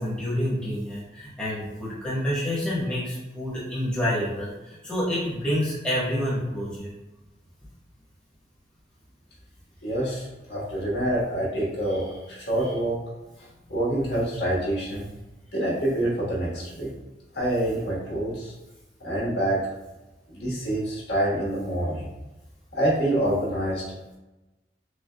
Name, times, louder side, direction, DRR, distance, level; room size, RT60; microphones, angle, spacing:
voice 1, 0.0-6.9 11.9-12.0, equal, 5° left, -10 dB, 1.3 m, -28 dB
voice 2, 9.8-13.0 13.7-15.1 15.5-16.9 17.3-18.5 19.0-19.6 20.3-22.1 22.7-23.8, right 1 dB, 75° left, -6 dB, 1.5 m, -26 dB
6.3 x 2.4 x 2.2 m, 1.0 s
head